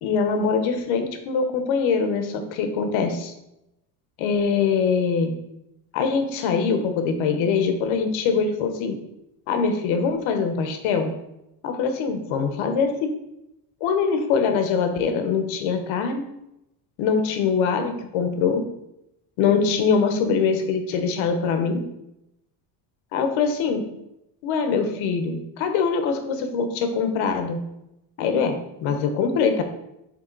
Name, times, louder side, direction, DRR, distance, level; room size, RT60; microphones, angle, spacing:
voice 1, 0.0-3.3 4.2-5.4 5.9-9.0 9.5-11.1 11.6-13.1 13.8-16.2 17.0-18.6 19.4-21.8 23.1-23.8 24.4-27.6 28.2-29.6, left 5 dB, 75° left, 6 dB, 1.1 m, -23 dB
7.7 x 3.5 x 3.9 m, 0.87 s
cardioid pair, 150°, 47 cm